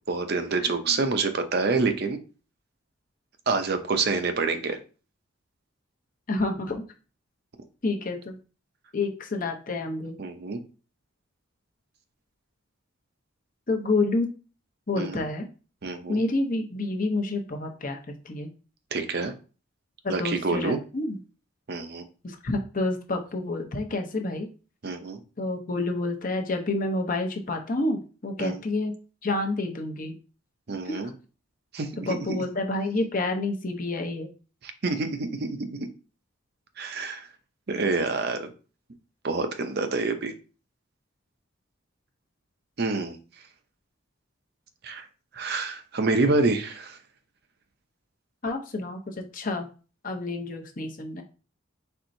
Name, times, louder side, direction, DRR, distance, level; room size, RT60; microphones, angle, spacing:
voice 1, 0.1-2.2 3.5-4.8 10.2-10.6 15.0-15.2 15.8-16.2 18.9-19.3 20.1-20.8 21.7-22.0 24.8-25.2 28.4-28.6 30.7-31.1 31.7-32.4 34.6-35.9 36.8-37.3 37.7-38.5 39.2-40.3 42.8-43.2 44.8-45.1 45.3-47.0, right 3 dB, 50° right, 7 dB, 0.6 m, -27 dB
voice 2, 0.6-1.0 6.3-6.8 7.8-8.4 8.9-10.2 13.7-14.3 14.9-15.5 16.1-18.0 18.2-18.5 20.0-21.2 22.2-24.5 25.4-28.9 29.2-30.1 30.9-31.0 32.1-34.3 48.4-49.7 50.0-51.2, left 2 dB, 40° left, 4 dB, 0.7 m, -29 dB
4.4 x 4.2 x 2.6 m, 0.35 s
head